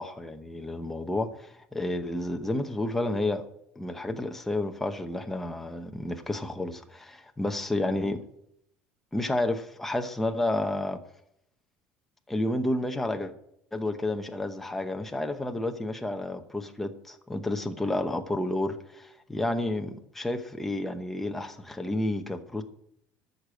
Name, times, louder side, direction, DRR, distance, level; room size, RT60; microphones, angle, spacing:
voice 1, 0.0-3.5 3.8-8.2 9.1-11.0 12.3-13.3 13.7-22.6, left 1 dB, 5° left, 6 dB, 0.9 m, -30 dB
13.5 x 6.7 x 7.7 m, 0.74 s
cardioid pair, 170°, 5 cm